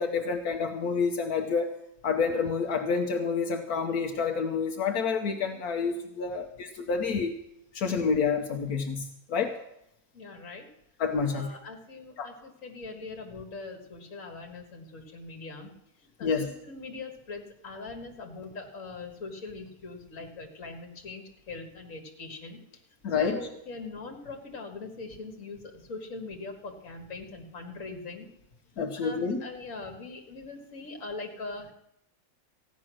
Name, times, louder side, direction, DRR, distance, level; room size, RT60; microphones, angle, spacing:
voice 1, 0.0-1.7 2.0-7.3 7.7-9.6 11.0-11.5 12.2-12.3 16.2-16.5 23.0-23.4 28.8-29.4, left 5 dB, 75° left, 4 dB, 1.4 m, -28 dB
voice 2, 10.1-10.7 11.3-15.7 16.0-22.6 23.1-28.3 29.0-31.7, left 3 dB, 60° left, 3 dB, 2.1 m, -41 dB
15.5 x 9.7 x 6.2 m, 0.81 s
omnidirectional pair, 1.6 m